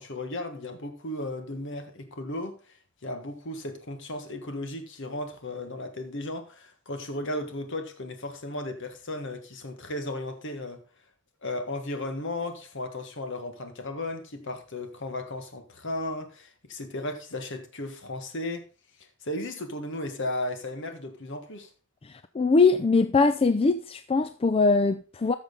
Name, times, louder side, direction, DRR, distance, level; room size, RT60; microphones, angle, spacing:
voice 1, 0.0-2.6 3.0-10.8 11.4-18.7 19.2-21.7, left 1 dB, 60° left, 1.6 m, -35 dB
voice 2, 22.0-25.4, left 4 dB, 25° left, 0.4 m, -22 dB
13.5 x 6.5 x 3.8 m
head